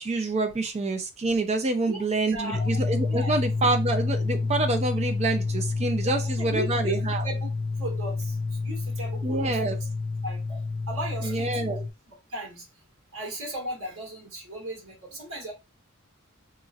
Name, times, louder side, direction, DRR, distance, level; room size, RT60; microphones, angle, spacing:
voice 1, 0.0-7.2 9.2-9.8 11.2-11.8, right 2 dB, 30° right, 0.4 m, -27 dB
voice 2, 1.9-2.8 3.1-3.4 6.0-7.0 7.2-7.5 7.8-9.7 10.2-11.7 12.1-12.7 13.1-15.5, right 1 dB, 65° right, 1.7 m, -36 dB
sound 1, 2.5-11.9, left 3 dB, 40° left, 0.4 m, -29 dB
2.9 x 2.6 x 2.5 m
head